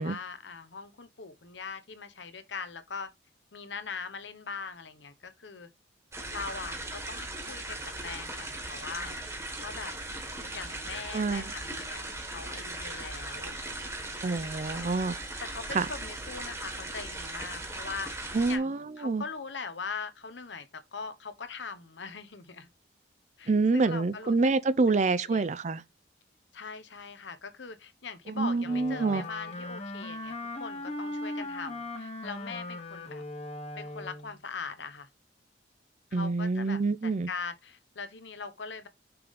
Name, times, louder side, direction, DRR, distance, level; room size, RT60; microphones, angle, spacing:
voice 1, 0.0-3.1 3.5-5.7 6.3-9.3 9.6-9.9 10.5-13.5 14.7-15.1 15.4-22.7 23.4-24.5 25.2-25.6 26.5-33.2 33.7-35.1 36.1-38.9, left 5 dB, 80° left, 1.0 m, -41 dB
sound 1, 6.1-18.6, right 2 dB, 15° right, 1.4 m, -38 dB
voice 2, 11.1-11.5 14.2-15.2 15.7-15.9 18.3-19.2 23.5-25.8 28.3-29.2 36.1-37.3, right 3 dB, 40° right, 0.5 m, -27 dB
Wind instrument woodwind instrument, 28.6-34.4, left 2 dB, 35° left, 1.2 m, -38 dB
6.0 x 3.7 x 4.8 m
head